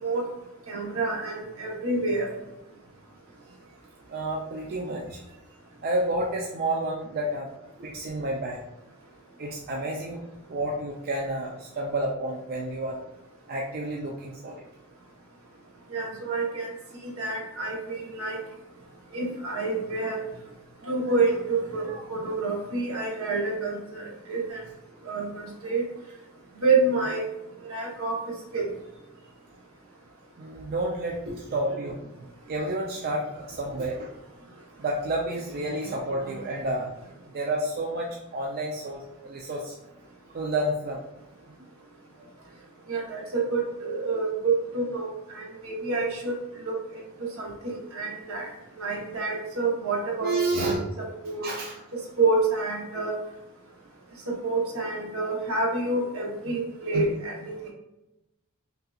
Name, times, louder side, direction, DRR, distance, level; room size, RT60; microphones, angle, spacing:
voice 1, 0.7-2.3 15.9-16.7 17.2-18.4 19.1-20.2 20.9-24.6 25.0-25.8 26.6-27.2 27.7-28.2 28.5-28.7 42.9-45.1 45.4-46.3 46.6-47.0 47.4-48.5 48.8-51.5 52.2-53.2 54.4-57.6, right 3 dB, 70° right, -1 dB, 1.0 m, -28 dB
voice 2, 4.1-5.4 5.8-7.5 7.8-8.6 9.4-13.0 13.5-14.6 20.8-20.9 21.2-21.3 21.9-22.0 30.4-32.1 32.5-34.2 34.8-36.9 37.3-39.8 40.3-41.0 42.4-42.5 50.2-50.9 51.4-51.7 56.9-57.2, right 1 dB, 45° right, -2 dB, 0.5 m, -30 dB
5.4 x 2.5 x 2.3 m, 0.94 s
head